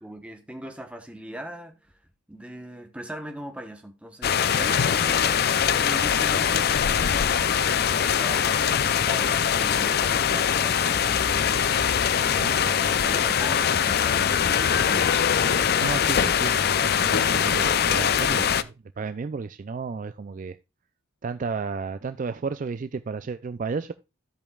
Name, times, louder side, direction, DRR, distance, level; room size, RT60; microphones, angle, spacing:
voice 1, 0.0-2.0 2.3-7.3 7.8-11.7 12.2-15.2, right 1 dB, 5° right, 1.0 m, -40 dB
sound 1, 4.2-18.6, left 8 dB, 50° left, 0.4 m, -22 dB
voice 2, 12.4-12.8 15.8-20.6 21.2-23.9, right 4 dB, 40° right, 0.3 m, -33 dB
15.5 x 5.2 x 2.3 m
head